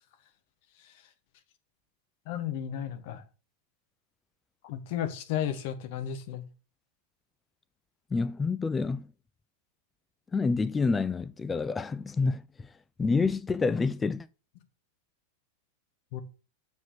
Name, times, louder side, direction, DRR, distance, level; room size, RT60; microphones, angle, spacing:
voice 1, 2.3-3.2 4.6-6.5 16.1-16.2, left 10 dB, 50° left, 1.3 m, -33 dB
voice 2, 8.1-9.0 10.3-12.7 13.0-14.3, left 4 dB, 15° left, 0.3 m, -28 dB
7.2 x 5.0 x 6.7 m
figure-of-eight pair, 90°, 0 cm